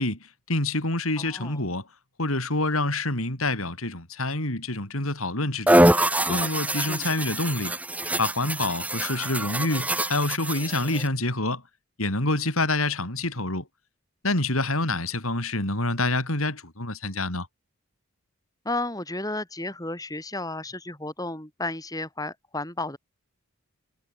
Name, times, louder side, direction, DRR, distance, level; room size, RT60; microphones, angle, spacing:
voice 1, 0.0-1.9 2.2-5.9 6.3-7.8 8.2-11.6 12.0-13.7 14.2-17.5, left 2 dB, 75° left, 7.3 m, -27 dB
voice 2, 1.2-1.6 6.9-7.0 18.6-23.0, left 2 dB, 15° left, 5.8 m, -33 dB
sound 1, 5.7-11.1, right 1 dB, 5° right, 2.3 m, -24 dB
head